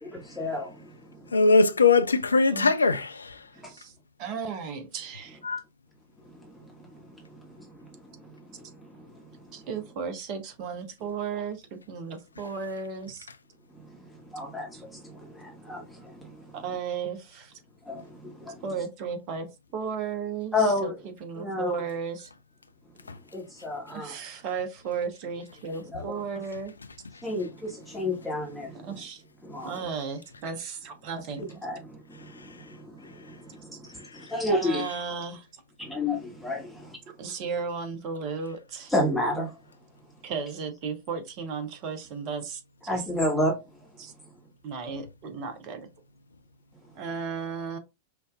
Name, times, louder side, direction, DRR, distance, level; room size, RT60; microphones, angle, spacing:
voice 1, 0.0-1.3 6.2-9.6 13.7-16.6 17.9-18.6 20.5-20.9 21.4-21.8 23.3-24.2 25.7-26.2 27.2-29.0 29.4-29.9 31.4-34.8 35.8-37.0 38.9-39.5 42.9-43.5, left 1 dB, ahead, 1.4 m, -32 dB
voice 2, 1.3-3.3 5.4-5.6, left 4 dB, 75° left, 0.3 m, -20 dB
voice 3, 4.2-5.4 9.5-13.3 16.5-17.6 18.6-19.5 19.7-20.9 21.2-22.3 23.9-26.7 28.7-29.2 29.6-31.6 34.5-35.5 37.2-38.9 40.2-43.0 44.0-44.1 44.6-45.9 47.0-47.8, right 6 dB, 40° right, 0.9 m, -34 dB
5.6 x 2.7 x 2.3 m
figure-of-eight pair, 90°, 0 cm